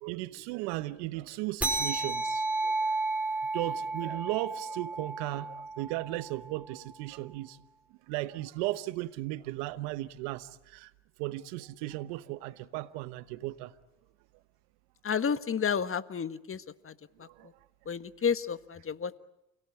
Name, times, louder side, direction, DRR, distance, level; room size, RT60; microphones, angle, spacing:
voice 1, 0.0-2.9 3.5-7.6 8.1-10.9 11.2-13.7 17.4-17.5, right 18 dB, 85° right, 1.1 m, -36 dB
sound 1, 1.6-6.5, right 3 dB, 5° right, 5.6 m, -32 dB
voice 2, 15.0-16.6 16.9-17.0 17.9-19.2, left 6 dB, 35° left, 1.5 m, -31 dB
29.0 x 18.0 x 9.9 m
hypercardioid pair, 60°, 35 cm